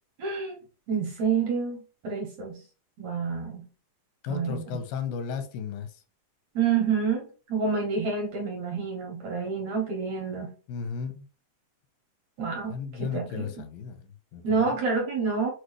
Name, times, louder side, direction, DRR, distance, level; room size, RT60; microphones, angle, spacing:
voice 1, 0.2-0.6 0.9-2.6 3.0-3.7 4.3-4.6 6.6-10.5 12.4-12.8 13.1-13.5 14.4-15.5, right 5 dB, 65° right, 1.9 m, -28 dB
voice 2, 4.2-6.0 10.7-11.3 12.6-14.7, left 6 dB, 90° left, 2.5 m, -35 dB
6.2 x 2.6 x 3.1 m
omnidirectional pair, 4.2 m